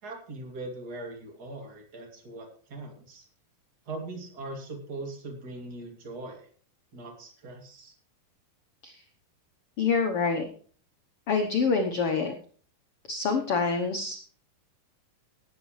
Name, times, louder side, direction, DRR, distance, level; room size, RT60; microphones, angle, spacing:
voice 1, 0.0-3.2 3.9-6.5 6.9-7.9, right 2 dB, 30° right, 2 dB, 2.6 m, -40 dB
voice 2, 9.8-10.5 11.3-12.3 13.1-14.2, left 5 dB, 80° left, 4 dB, 1.3 m, -26 dB
19.0 x 8.6 x 3.2 m, 0.43 s
omnidirectional pair, 4.2 m